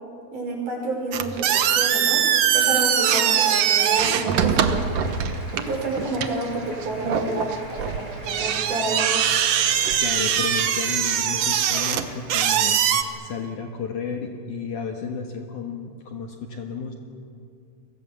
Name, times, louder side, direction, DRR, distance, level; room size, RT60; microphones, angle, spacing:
voice 1, 0.3-2.2 2.5-4.8 5.6-9.1, right 2 dB, 50° right, 0 dB, 7.0 m, -29 dB
sound 1, 1.1-13.0, right 9 dB, 90° right, 1.4 m, -22 dB
Applause, 1.8-13.4, equal, 10° right, 7.9 m, -45 dB
voice 2, 10.0-16.9, left 5 dB, 60° left, 3 dB, 2.5 m, -32 dB
29.5 x 23.5 x 7.3 m, 2.4 s
omnidirectional pair, 4.7 m